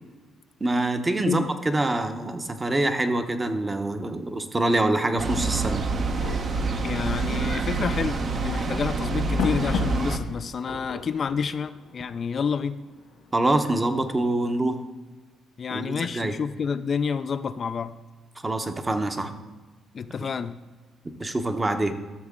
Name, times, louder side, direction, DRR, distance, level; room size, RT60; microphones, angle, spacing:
voice 1, 0.6-5.8 13.3-14.8 15.7-16.3 18.4-19.3 20.2-20.3 21.2-22.0, right 2 dB, 20° right, 7 dB, 0.8 m, -25 dB
sound 1, 4.0-14.1, left 6 dB, 85° left, 1.8 m, -38 dB
sound 2, 5.2-10.2, right 3 dB, 50° right, 0.9 m, -27 dB
voice 2, 6.8-12.8 15.6-18.0 19.9-20.6, left 6 dB, 50° left, 11 dB, 0.3 m, -29 dB
13.0 x 6.5 x 3.6 m, 1.3 s
cardioid pair, 90°, 0 cm